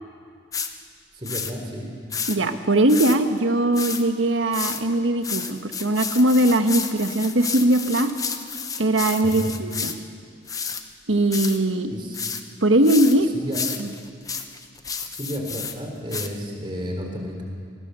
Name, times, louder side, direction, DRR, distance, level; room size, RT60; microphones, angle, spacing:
sound 1, 0.5-0.7 1.2-1.5 2.1-2.4 2.9-3.2 3.7-4.0 4.5-4.8 5.2-9.9 10.5-10.8 11.3-11.6 12.1-12.4 12.8-13.2 13.5-15.7 16.1-16.3, left 6 dB, 20° left, 0.9 m, -31 dB
voice 1, 1.1-1.9 9.2-9.5 11.9-12.2 13.3-13.6 15.0-17.4, equal, 25° right, 1 dB, 3.9 m, -32 dB
voice 2, 2.3-8.1 8.8-9.9 11.1-11.9 12.6-13.3 13.8-13.9, right 1 dB, 85° right, 7 dB, 1.5 m, -20 dB
27.0 x 20.0 x 7.0 m, 2.2 s
head